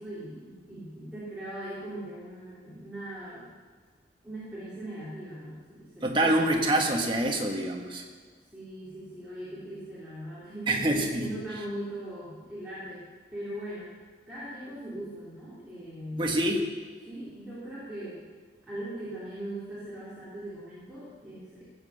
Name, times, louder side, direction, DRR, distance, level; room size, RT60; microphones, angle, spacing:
voice 1, 0.0-3.5 4.2-6.3 8.5-13.0 13.3-13.9 14.3-16.4 17.1-18.2 18.6-21.6, right 1 dB, 5° right, -11 dB, 3.2 m, -40 dB
voice 2, 6.0-8.0 10.7-11.3 16.2-16.7, right 1 dB, 30° right, 1 dB, 1.5 m, -26 dB
15.5 x 7.9 x 6.6 m, 1.5 s
head